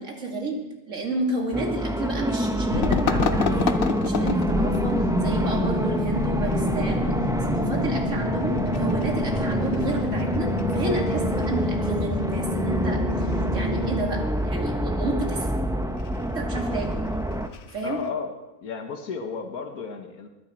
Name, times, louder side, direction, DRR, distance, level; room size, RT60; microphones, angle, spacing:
voice 1, 0.0-15.5 16.3-17.1 17.7-18.0, right 2 dB, 60° right, 0 dB, 2.8 m, -31 dB
sound 1, 1.5-17.5, equal, 5° right, 0.4 m, -26 dB
sound 2, 2.7-18.1, left 7 dB, 55° left, 0.7 m, -34 dB
sound 3, 4.2-14.2, left 4 dB, 35° left, 1.4 m, -31 dB
voice 2, 17.8-20.3, left 5 dB, 85° left, 5 dB, 1.8 m, -33 dB
20.5 x 10.0 x 4.4 m, 1.1 s
omnidirectional pair, 1.5 m